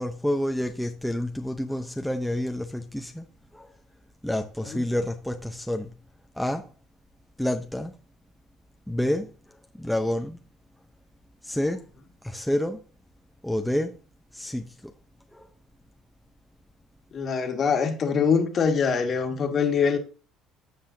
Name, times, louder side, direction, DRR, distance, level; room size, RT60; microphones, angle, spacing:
voice 1, 0.0-3.3 3.5-3.7 4.2-5.9 6.4-6.7 7.4-7.9 8.9-9.3 9.8-10.4 11.4-11.9 12.2-12.8 13.4-14.0 14.3-14.9 15.3-15.5, left 1 dB, ahead, 0.8 m, -28 dB
voice 2, 17.1-20.0, left 6 dB, 40° left, 1.8 m, -23 dB
15.5 x 5.6 x 2.8 m
cardioid pair, 105°, 0 cm